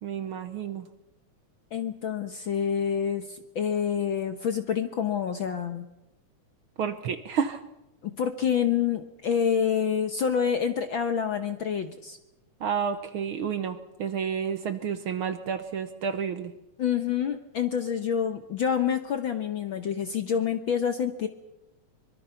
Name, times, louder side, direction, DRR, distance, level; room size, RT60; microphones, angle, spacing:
voice 1, 0.0-0.9 6.8-7.6 12.6-16.5, right 7 dB, 65° right, 10 dB, 1.4 m, -30 dB
voice 2, 1.7-5.9 8.0-12.2 16.8-21.3, left 8 dB, 65° left, 8 dB, 1.3 m, -27 dB
24.5 x 23.0 x 5.8 m, 0.93 s
omnidirectional pair, 3.5 m